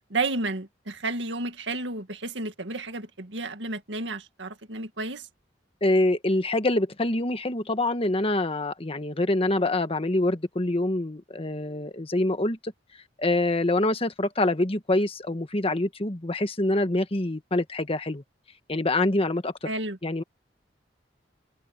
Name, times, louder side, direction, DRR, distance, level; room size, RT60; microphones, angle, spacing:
voice 1, 0.1-5.3 19.6-20.0, right 3 dB, 75° right, 2.2 m, -32 dB
voice 2, 5.8-12.7 13.2-18.2 18.7-19.7 20.0-20.2, left 2 dB, 30° left, 1.4 m, -25 dB
head